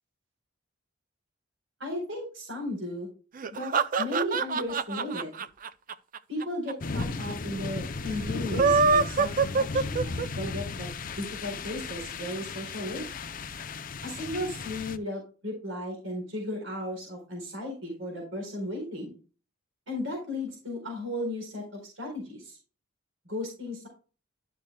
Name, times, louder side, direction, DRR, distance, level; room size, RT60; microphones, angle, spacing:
voice 1, 1.8-3.1 3.5-5.3 6.3-13.1 14.0-19.2 19.9-22.6 23.3-23.9, left 1 dB, 80° right, 0 dB, 4.2 m, -35 dB
sound 1, 3.4-6.7 7.0-7.1 7.3-7.4 8.4-10.5, right 5 dB, 45° right, 0.5 m, -25 dB
sound 2, 6.8-15.0, left 4 dB, 45° left, 0.6 m, -35 dB
11.5 x 6.5 x 2.3 m, 0.35 s
head